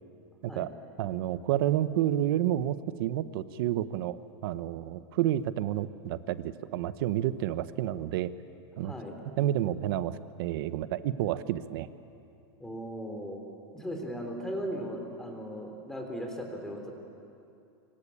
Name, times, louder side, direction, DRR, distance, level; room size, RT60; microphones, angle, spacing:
voice 1, 1.0-8.3 8.8-8.9 9.4-11.9, right 12 dB, 60° right, 13 dB, 1.1 m, -30 dB
voice 2, 8.8-9.2 12.6-13.4 13.7-16.9, equal, 5° left, 2 dB, 3.3 m, -37 dB
26.5 x 24.0 x 8.7 m, 2.7 s
supercardioid pair, 155°, 14 cm